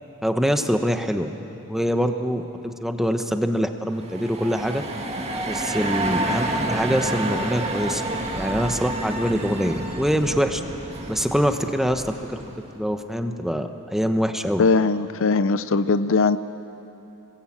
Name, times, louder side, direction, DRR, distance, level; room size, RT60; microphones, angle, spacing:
voice 1, 0.2-1.3 1.7-4.8 5.4-8.0 8.3-10.6 11.1-12.4 12.8-14.6, equal, ahead, 6 dB, 1.1 m, -24 dB
sound 1, 3.9-12.6, right 1 dB, 30° right, 2.2 m, -29 dB
voice 2, 14.6-16.4, left 4 dB, 60° left, 13 dB, 0.6 m, -20 dB
27.0 x 21.5 x 8.7 m, 2.9 s
head